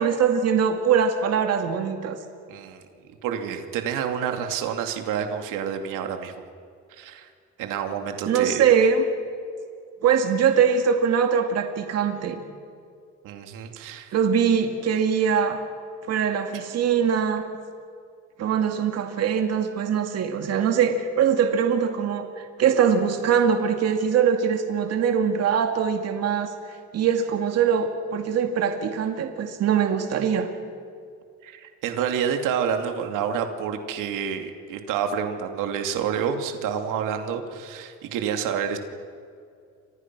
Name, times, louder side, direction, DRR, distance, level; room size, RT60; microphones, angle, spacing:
voice 1, 0.0-2.2 8.3-9.0 10.0-12.4 14.1-15.6 16.1-17.4 18.4-22.3 22.6-26.5 26.9-30.5, right 7 dB, 55° right, 5 dB, 2.2 m, -22 dB
voice 2, 2.5-2.8 3.2-6.3 6.9-7.3 7.6-8.7 13.2-14.1 31.4-38.8, right 7 dB, 90° right, 5 dB, 2.7 m, -28 dB
30.0 x 25.5 x 6.2 m, 2.3 s
cardioid pair, 150°, 31 cm